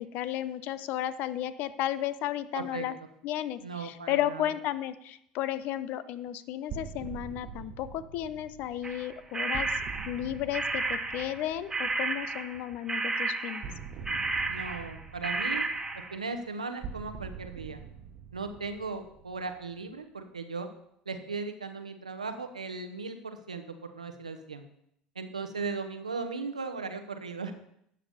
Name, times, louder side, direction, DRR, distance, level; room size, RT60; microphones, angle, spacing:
voice 1, 0.0-2.9 3.2-9.7 10.1-13.7, left 12 dB, 50° left, 15 dB, 0.6 m, -33 dB
voice 2, 2.5-2.8 3.6-4.5 14.5-15.7 15.9-17.8 18.3-20.7 21.0-24.6 25.1-27.5, right 4 dB, 85° right, 7 dB, 0.9 m, -37 dB
sound 1, 6.7-12.4 13.6-19.9, right 6 dB, 45° right, 1.2 m, -45 dB
sound 2, 8.8-11.4 11.7-15.0 15.2-16.2, right 3 dB, 15° right, 1.5 m, -32 dB
12.5 x 8.4 x 4.3 m, 0.72 s
figure-of-eight pair, 70°, 4 cm